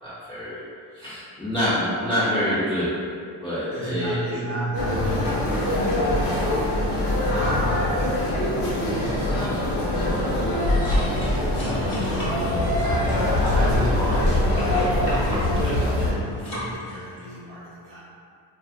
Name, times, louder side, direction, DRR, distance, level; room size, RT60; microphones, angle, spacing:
voice 1, 0.0-0.6 0.9-3.0 3.4-4.4, equal, 10° left, -14 dB, 0.6 m, -26 dB
voice 2, 3.7-8.3 8.7-18.0, right 1 dB, 25° right, -10 dB, 1.1 m, -35 dB
sound 1, 4.7-16.1, left 1 dB, 70° left, 0.8 m, -23 dB
sound 2, 10.6-17.4, left 1 dB, 40° left, 1.2 m, -36 dB
2.4 x 2.4 x 2.4 m, 2.3 s
cardioid pair, 95°, 47 cm